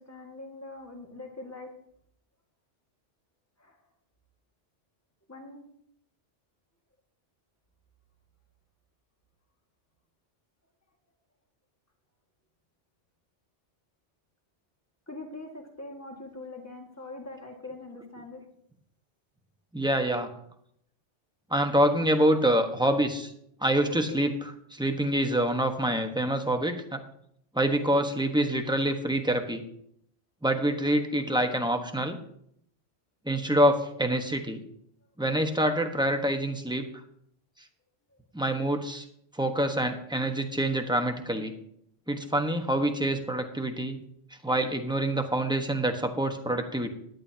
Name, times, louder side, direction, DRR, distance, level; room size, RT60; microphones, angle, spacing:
voice 1, 0.0-1.7 3.6-3.8 5.3-5.7 15.1-18.4 24.1-24.2, left 2 dB, 15° left, 2 dB, 1.7 m, -43 dB
voice 2, 19.7-20.3 21.5-23.3 23.6-27.0 27.5-29.6 30.4-32.2 33.3-34.6 35.2-36.8 38.3-39.0 39.3-41.5 42.1-44.0 44.4-46.9, right 1 dB, 5° right, 5 dB, 1.0 m, -26 dB
16.5 x 11.0 x 2.8 m, 0.70 s
omnidirectional pair, 1.2 m